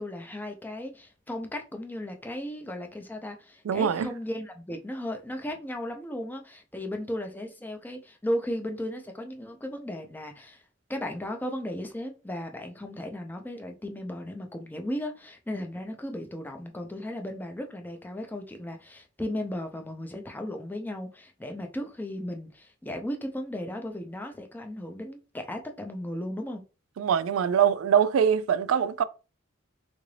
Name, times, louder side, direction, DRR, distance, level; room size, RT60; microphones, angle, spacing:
voice 1, 0.0-10.6 10.9-26.6, left 1 dB, 10° left, 0.5 m, -35 dB
voice 2, 3.6-4.1 27.0-29.0, right 8 dB, 90° right, 0.3 m, -23 dB
3.8 x 2.5 x 3.2 m
head